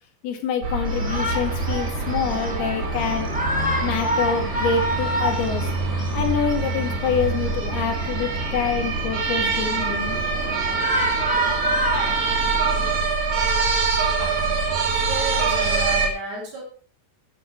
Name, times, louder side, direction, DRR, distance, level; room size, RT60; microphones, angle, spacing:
voice 1, 0.2-3.3 3.8-5.7 6.1-10.2, left 6 dB, 70° left, 4 dB, 4.1 m, -26 dB
sound 1, 0.6-16.1, right 4 dB, 50° right, 3.4 m, -25 dB
Shout, 0.8-13.0, equal, 5° right, 1.7 m, -29 dB
voice 2, 15.0-16.6, right 2 dB, 65° right, -2 dB, 5.1 m, -32 dB
12.5 x 10.0 x 4.7 m, 0.42 s
omnidirectional pair, 4.9 m